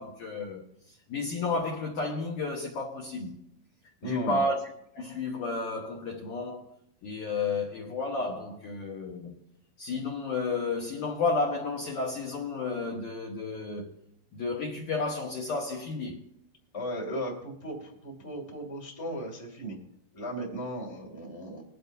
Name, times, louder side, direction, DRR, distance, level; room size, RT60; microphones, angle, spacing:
voice 1, 0.0-3.4 4.0-4.6 4.9-6.8 7.0-9.4 9.8-13.9 14.3-16.2, left 3 dB, 75° left, 1.8 m, -32 dB
voice 2, 4.0-4.4 16.7-19.8 20.1-21.6, equal, 20° left, 0.8 m, -36 dB
21.0 x 11.0 x 2.7 m
omnidirectional pair, 5.5 m